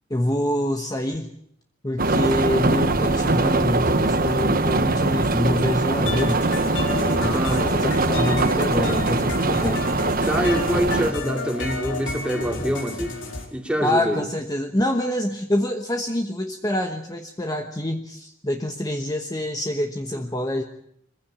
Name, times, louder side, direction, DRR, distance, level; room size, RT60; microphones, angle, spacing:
voice 1, 0.1-1.3 1.8-6.4 7.2-9.9 13.8-20.6, left 1 dB, 20° left, 4 dB, 1.1 m, -26 dB
sound 1, 2.0-11.1, right 2 dB, 45° right, 1.2 m, -22 dB
sound 2, 6.1-13.4, left 3 dB, 70° left, 4.3 m, -31 dB
voice 2, 7.1-7.7 10.3-13.1 13.5-14.2 20.1-20.2, equal, 5° right, 3 dB, 2.7 m, -25 dB
22.5 x 16.0 x 8.8 m, 0.74 s
head